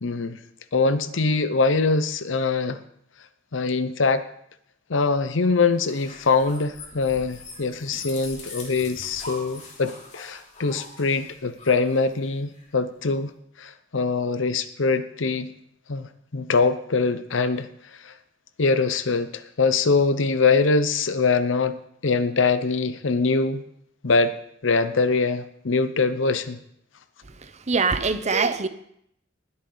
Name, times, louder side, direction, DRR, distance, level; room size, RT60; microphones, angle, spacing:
voice 1, 0.0-0.4 0.7-2.8 3.5-4.2 4.9-13.3 13.6-15.5 15.9-17.7 18.0-18.1 18.6-21.8 22.0-23.6 24.0-24.4 24.6-26.6, left 4 dB, 75° left, 0.8 m, -23 dB
sound 1, 5.7-12.7, left 3 dB, 40° left, 3.2 m, -42 dB
voice 2, 27.3-28.7, right 4 dB, 35° right, 0.8 m, -24 dB
19.5 x 8.7 x 4.0 m
head